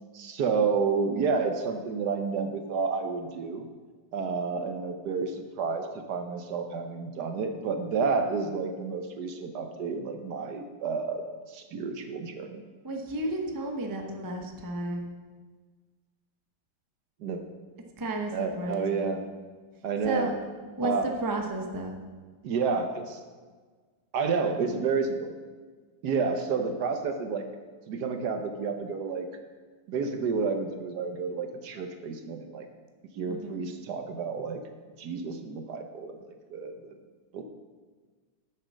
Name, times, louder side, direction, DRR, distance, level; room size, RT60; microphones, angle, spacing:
voice 1, 0.1-3.7 4.1-11.2 11.5-12.6 17.2-17.4 18.3-19.2 19.8-20.3 20.8-21.1 22.4-23.2 24.1-25.3 26.0-27.5 27.9-29.3 29.9-32.7 33.1-34.6 35.0-36.2 36.5-37.0 37.3-37.4, right 5 dB, 65° right, 6 dB, 1.3 m, -30 dB
voice 2, 12.8-15.1 18.0-19.2 20.0-20.3 20.8-22.0 33.3-33.6, right 1 dB, 20° right, 2 dB, 0.6 m, -33 dB
9.2 x 6.9 x 6.3 m, 1.5 s
omnidirectional pair, 2.1 m